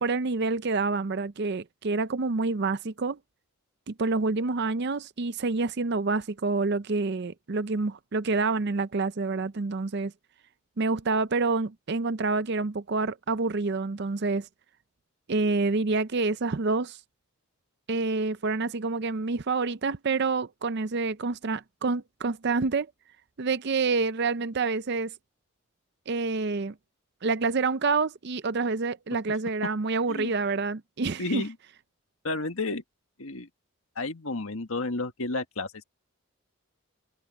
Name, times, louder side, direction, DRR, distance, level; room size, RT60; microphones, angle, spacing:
voice 1, 0.0-3.2 3.9-10.1 10.8-14.5 15.3-17.0 17.9-22.9 23.4-25.1 26.1-26.7 27.2-31.4, right 3 dB, 50° right, 0.5 m, -27 dB
voice 2, 31.2-31.6 32.2-32.8 33.2-33.5 34.0-35.8, left 3 dB, 70° left, 1.7 m, -31 dB
head